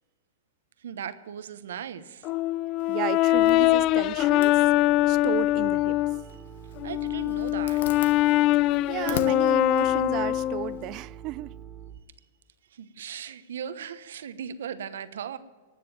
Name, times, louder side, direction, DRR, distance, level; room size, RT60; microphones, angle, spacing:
voice 1, 0.8-2.3 6.2-6.4 6.8-8.0 12.7-15.4, right 8 dB, 75° right, 1.0 m, -38 dB
Brass instrument, 2.2-6.2 6.8-10.8, left 16 dB, 40° left, 0.3 m, -23 dB
Zipper (clothing), 2.8-10.9, left 8 dB, 65° left, 1.0 m, -44 dB
voice 2, 2.9-4.7 5.0-6.0 8.9-11.5, right 18 dB, 40° right, 0.4 m, -33 dB
Piano, 3.4-12.0, right 6 dB, 20° right, 2.3 m, -46 dB
19.0 x 6.8 x 9.0 m
hypercardioid pair, 115°, 0 cm